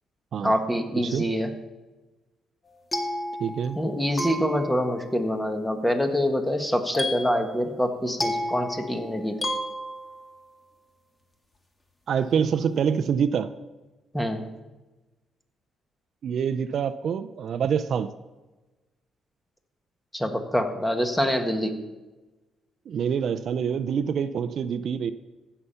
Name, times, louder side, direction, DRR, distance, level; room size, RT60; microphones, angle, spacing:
voice 1, 0.4-1.5 3.7-9.4 14.1-14.5 20.1-21.8, equal, 5° left, 5 dB, 1.6 m, -25 dB
voice 2, 1.0-1.3 3.4-3.8 12.1-13.5 16.2-18.1 22.9-25.1, right 7 dB, 60° right, 12 dB, 0.5 m, -26 dB
sound 1, 2.7-3.9 4.2-5.1 6.9-10.4, left 1 dB, 25° left, 2.1 m, -32 dB
15.5 x 6.9 x 5.7 m, 1.1 s
cardioid pair, 90°, 0 cm